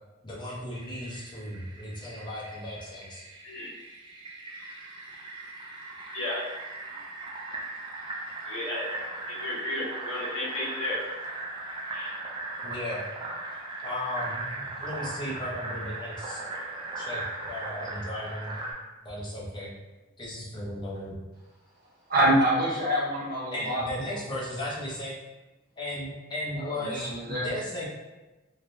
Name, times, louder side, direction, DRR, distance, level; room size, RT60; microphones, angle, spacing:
voice 1, 0.2-3.2 12.6-13.1 13.8-16.4 17.0-18.6 19.0-19.7 20.2-21.2 23.5-25.2 25.8-27.9, left 1 dB, 20° left, -6 dB, 0.6 m, -36 dB
Fill (with liquid), 0.7-18.7, right 2 dB, 25° right, 0.4 m, -38 dB
voice 2, 8.5-8.9 9.3-11.0 11.9-12.1, left 1 dB, 75° left, -4 dB, 0.7 m, -33 dB
voice 3, 22.1-23.8 24.1-24.2 26.5-27.5, right 1 dB, 45° right, -7 dB, 1.0 m, -26 dB
3.2 x 2.1 x 2.6 m, 1.1 s
head